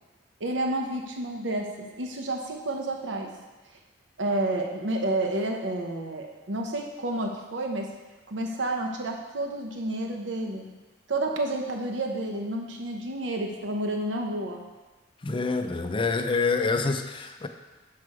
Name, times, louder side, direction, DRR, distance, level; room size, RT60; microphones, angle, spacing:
voice 1, 0.4-3.3 4.2-7.9 8.3-10.7 11.1-14.6, right 1 dB, 80° right, 2 dB, 0.8 m, -30 dB
voice 2, 15.2-17.5, left 4 dB, 30° left, 7 dB, 0.5 m, -26 dB
6.4 x 5.7 x 4.8 m, 1.2 s
head